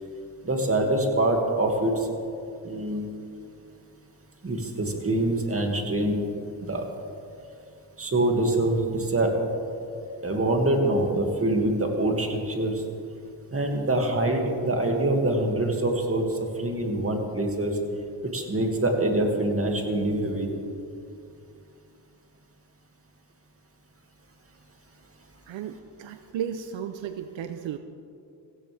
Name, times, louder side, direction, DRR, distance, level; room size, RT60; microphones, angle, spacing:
voice 1, 0.4-2.1 2.6-3.1 4.4-6.2 6.6-6.9 8.0-9.4 10.2-12.8 13.5-17.8 18.2-20.5, right 1 dB, 30° right, 2 dB, 2.4 m, -25 dB
voice 2, 25.5-27.8, right 9 dB, 80° right, 9 dB, 0.8 m, -34 dB
17.0 x 15.5 x 3.5 m, 2.5 s
cardioid pair, 70°, 45 cm